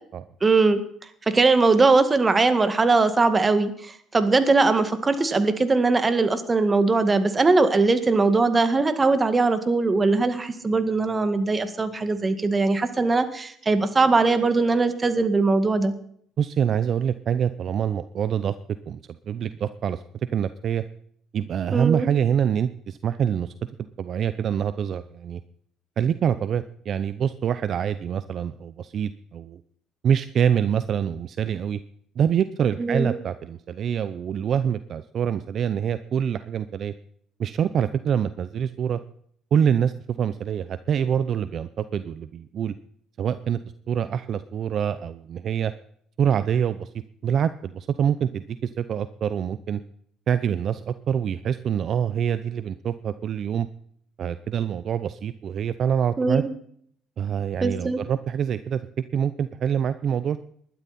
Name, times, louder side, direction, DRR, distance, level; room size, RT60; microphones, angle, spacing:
voice 1, 0.4-0.8 1.3-15.9 21.7-22.1 32.8-33.1 56.2-56.5 57.6-58.0, right 3 dB, 25° right, 10 dB, 1.9 m, -20 dB
voice 2, 16.4-18.5 18.9-19.0 19.3-20.0 20.3-20.8 21.3-23.5 24.0-25.4 26.0-29.6 30.0-31.8 32.2-36.9 37.4-39.0 39.5-42.7 43.2-43.6 43.9-45.7 46.2-46.9 47.2-49.8 50.3-53.7 54.2-56.4 57.2-58.8 59.1-60.4, right 8 dB, 55° right, 13 dB, 0.7 m, -25 dB
20.0 x 12.0 x 4.3 m, 0.65 s
supercardioid pair, 85°, 0 cm